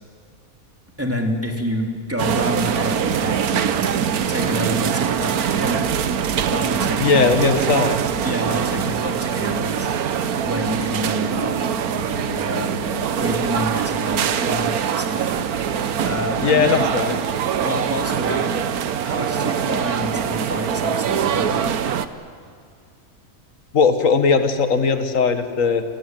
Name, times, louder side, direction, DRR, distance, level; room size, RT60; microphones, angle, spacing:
voice 1, 1.0-3.8 4.3-5.8 6.5-7.4 8.2-9.9 10.4-15.4 16.0-16.9 17.6-18.6 19.0-21.6, equal, 10° right, 2 dB, 3.0 m, -28 dB
sound 1, 2.2-22.1, right 8 dB, 75° right, 1.4 m, -23 dB
voice 2, 7.0-7.9 16.4-17.2 23.7-25.8, left 5 dB, 60° left, 8 dB, 2.0 m, -18 dB
29.5 x 19.0 x 9.2 m, 2.2 s
omnidirectional pair, 1.6 m